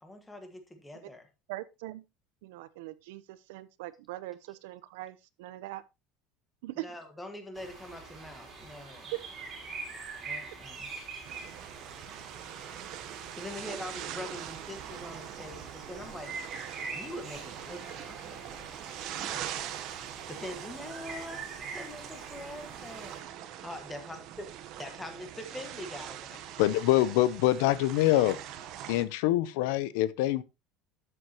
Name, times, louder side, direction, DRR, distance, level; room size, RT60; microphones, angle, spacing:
voice 1, 0.0-1.3 6.7-9.1 10.2-11.0 13.3-16.3 16.8-19.5 20.3-23.2 23.6-24.2 24.8-26.4, left 1 dB, 5° left, 1.5 m, -44 dB
voice 2, 1.5-2.0 2.4-5.8 6.6-6.9 9.1-9.2, right 17 dB, 85° right, 0.7 m, -41 dB
sound 1, 7.6-23.2, right 4 dB, 25° right, 3.1 m, -44 dB
sound 2, 11.2-29.1, right 11 dB, 40° right, 0.9 m, -43 dB
voice 3, 26.6-28.4 28.9-30.4, left 15 dB, 70° left, 0.6 m, -25 dB
12.0 x 7.9 x 2.9 m
cardioid pair, 180°, 0 cm